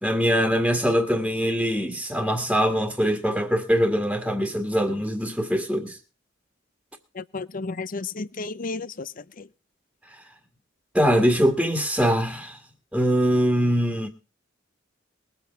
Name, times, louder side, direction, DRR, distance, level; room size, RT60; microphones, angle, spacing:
voice 1, 0.0-6.0 10.1-10.2 10.9-12.6 12.9-14.1, equal, 5° right, 1.9 m, -23 dB
voice 2, 7.1-9.5, left 3 dB, 45° left, 0.7 m, -33 dB
21.5 x 8.1 x 4.6 m
head